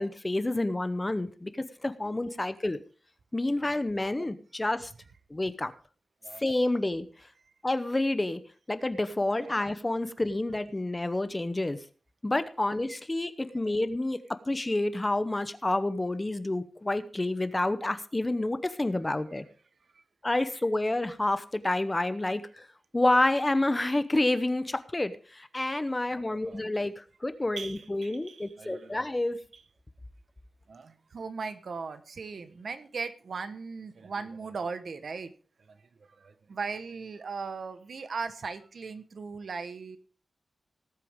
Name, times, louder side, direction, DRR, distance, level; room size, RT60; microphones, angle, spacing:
voice 1, 0.0-2.8 3.3-4.9 5.3-5.7 6.4-7.1 7.6-8.4 8.7-11.8 12.2-14.2 14.5-19.4 20.2-22.7 22.9-29.4, left 2 dB, 15° left, 11 dB, 0.8 m, -29 dB
voice 2, 26.1-26.7 27.6-29.1 29.5-29.6 30.7-35.3 35.6-40.0, right 4 dB, 60° right, 10 dB, 1.2 m, -39 dB
18.5 x 8.3 x 3.6 m, 0.39 s
wide cardioid pair, 150°, 0 cm